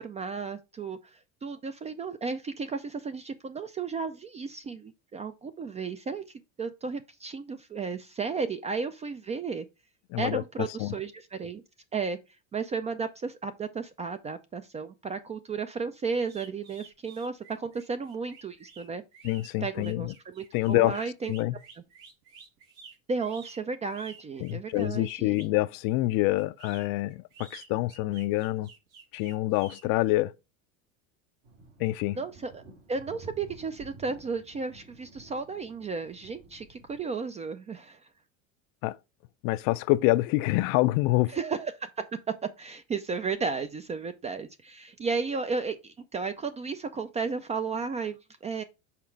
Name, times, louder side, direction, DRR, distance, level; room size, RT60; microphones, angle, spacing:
voice 1, 0.0-6.2 6.6-9.7 10.2-11.6 11.9-12.2 12.5-19.0 19.6-21.3 23.1-25.4 32.2-32.6 32.9-38.0 41.3-48.2 48.4-48.6, right 4 dB, 20° right, 0.3 m, -34 dB
voice 2, 10.1-11.0 19.2-20.1 20.5-21.6 24.4-28.7 29.1-30.3 31.8-32.2 38.8-39.0 39.4-41.4, left 18 dB, 55° left, 0.5 m, -26 dB
sound 1, 16.3-25.6 26.4-29.8, right 5 dB, 85° right, 2.2 m, -51 dB
sound 2, 31.4-37.0, right 2 dB, 65° right, 2.6 m, -52 dB
5.9 x 4.2 x 4.5 m
supercardioid pair, 115°, 40 cm